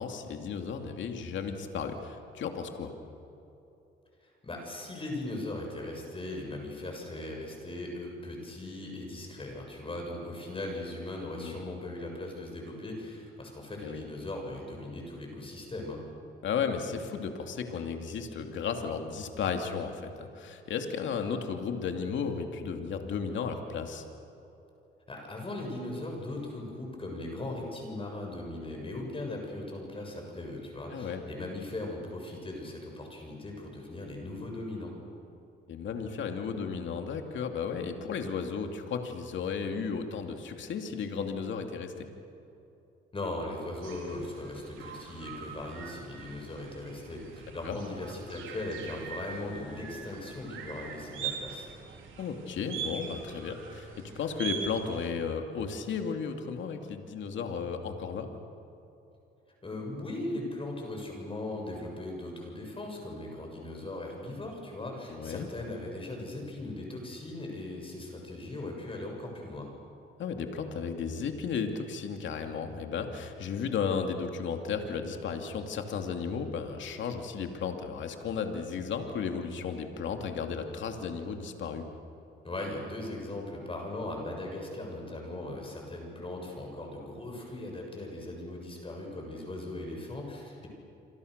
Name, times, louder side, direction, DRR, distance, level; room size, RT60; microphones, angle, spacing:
voice 1, 0.0-2.9 11.4-11.6 13.8-14.1 16.4-24.0 30.9-31.2 35.7-42.1 47.6-47.8 52.2-58.3 65.1-65.5 70.2-81.9, left 6 dB, 70° left, 5 dB, 2.6 m, -34 dB
voice 2, 4.4-16.0 25.1-34.9 43.1-51.7 59.6-69.7 82.4-90.7, left 2 dB, 25° left, 1 dB, 7.2 m, -39 dB
sound 1, 43.8-55.1, right 6 dB, 85° right, 3.9 m, -42 dB
27.5 x 26.0 x 6.7 m, 2.9 s
cardioid pair, 90°, 20 cm